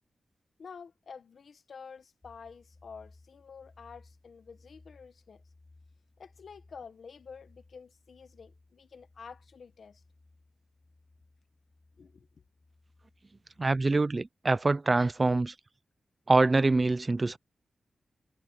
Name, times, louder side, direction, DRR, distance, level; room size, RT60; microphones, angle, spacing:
voice 1, 0.6-5.4 6.2-10.0 12.0-12.4, left 5 dB, 70° left, 1.2 m, -49 dB
sound 1, 2.2-14.1, left 2 dB, 30° left, 6.7 m, -61 dB
voice 2, 13.6-15.5 16.3-17.4, right 3 dB, 30° right, 0.5 m, -25 dB
wide cardioid pair, 110°, 0 cm